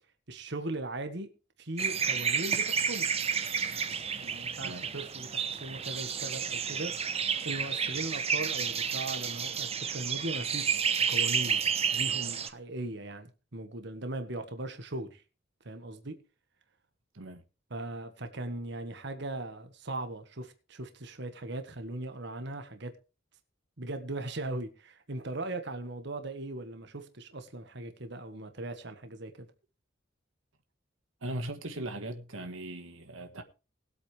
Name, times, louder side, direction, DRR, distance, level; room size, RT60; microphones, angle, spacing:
voice 1, 0.3-1.3 1.6-3.1 3.7-11.6 11.9-15.2 15.6-16.2 17.7-22.9 23.8-29.5, right 2 dB, 60° right, 1.6 m, -39 dB
sound 1, 1.8-12.5, right 6 dB, 30° right, 1.1 m, -31 dB
voice 2, 31.2-33.4, right 1 dB, 80° right, 1.6 m, -39 dB
20.0 x 8.4 x 3.4 m
head